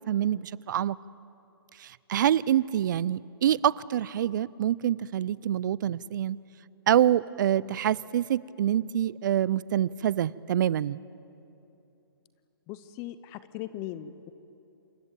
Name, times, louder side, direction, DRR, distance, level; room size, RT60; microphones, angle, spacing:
voice 1, 0.1-1.0 1.8-6.4 6.9-11.0, right 10 dB, 50° right, 22 dB, 0.5 m, -26 dB
voice 2, 12.7-14.3, left 13 dB, 25° left, 14 dB, 0.6 m, -39 dB
28.0 x 13.5 x 8.9 m, 2.9 s
hypercardioid pair, 145°, 13 cm